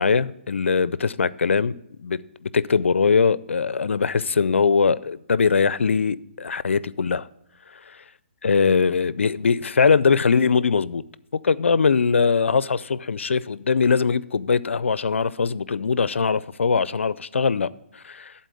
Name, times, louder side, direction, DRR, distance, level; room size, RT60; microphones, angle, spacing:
voice 1, 0.0-7.3 8.4-11.0 11.3-18.3, left 5 dB, 85° left, 0.4 m, -21 dB
12.0 x 4.1 x 7.7 m
hypercardioid pair, 145°, 6 cm